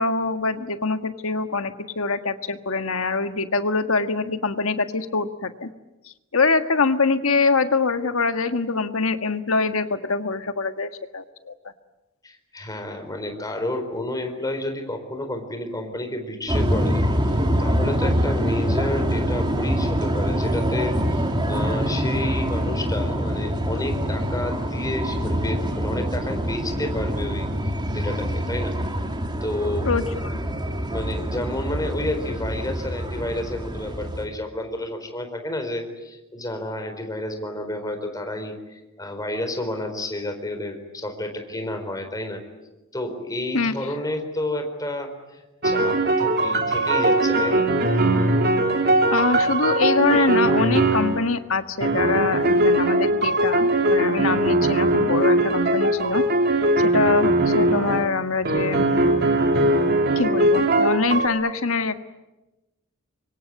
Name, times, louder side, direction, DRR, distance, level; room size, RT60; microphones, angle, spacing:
voice 1, 0.0-5.7 6.3-11.5 29.8-30.0 43.5-43.7 49.1-56.2 56.8-58.9 60.1-62.0, left 4 dB, 70° left, 8 dB, 1.6 m, -24 dB
voice 2, 12.2-27.5 27.9-28.8 29.4-29.9 30.9-42.4 42.9-47.7, left 1 dB, 15° left, 5 dB, 4.1 m, -30 dB
sound 1, 16.5-34.3, equal, 20° right, 3.0 m, -25 dB
sound 2, 45.6-51.2 51.8-58.1 58.4-61.3, right 1 dB, 50° right, 2.8 m, -20 dB
25.5 x 24.0 x 9.6 m, 1.0 s
head